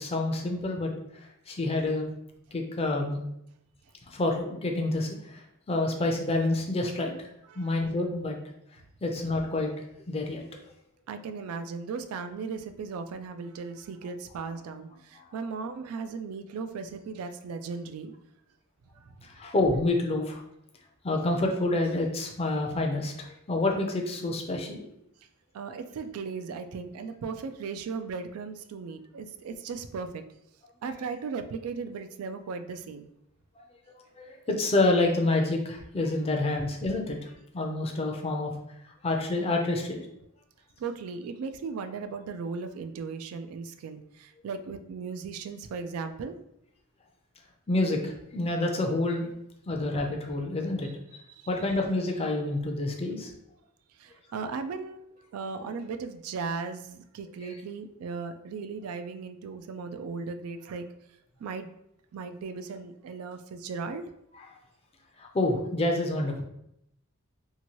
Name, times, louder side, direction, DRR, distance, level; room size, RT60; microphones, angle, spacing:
voice 1, 0.0-2.1 2.5-3.2 4.1-7.3 7.5-8.4 9.0-10.4 15.1-15.3 19.2-20.4 21.0-24.8 33.6-33.7 34.2-38.6 38.8-40.0 47.7-49.3 49.7-53.3 57.4-57.5 64.3-64.5 65.2-66.4, left 2 dB, 30° left, 2 dB, 0.4 m, -28 dB
voice 2, 11.1-18.1 18.9-19.3 25.5-30.2 30.8-33.1 40.8-46.4 51.4-51.5 54.0-55.0 55.3-60.9 61.4-61.7 62.1-64.0, right 5 dB, 85° right, 8 dB, 0.3 m, -37 dB
2.8 x 2.6 x 2.9 m, 0.78 s
head